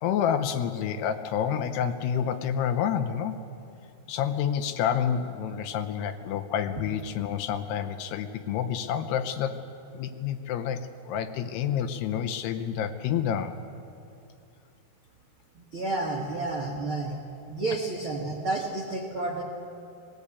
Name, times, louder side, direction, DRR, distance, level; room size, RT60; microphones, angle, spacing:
voice 1, 0.0-3.4 4.1-9.6 9.9-10.8 11.1-13.5, left 8 dB, 75° left, 8 dB, 2.7 m, -28 dB
voice 2, 15.5-17.2 17.5-19.4, right 2 dB, 70° right, -1 dB, 1.2 m, -30 dB
20.5 x 17.5 x 8.4 m, 2.6 s
omnidirectional pair, 5.0 m